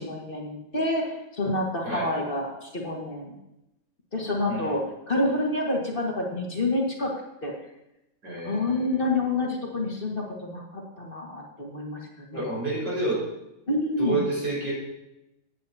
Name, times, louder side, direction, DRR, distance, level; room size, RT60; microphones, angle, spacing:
voice 1, 0.0-3.3 4.1-7.1 7.4-7.5 8.4-12.0 12.3-12.4 13.7-14.2, left 2 dB, 30° left, -1 dB, 1.9 m, -28 dB
voice 2, 8.2-9.1 12.3-13.2 14.0-14.7, right 2 dB, 90° right, -5 dB, 5.8 m, -29 dB
16.0 x 9.9 x 2.8 m, 0.89 s
omnidirectional pair, 1.9 m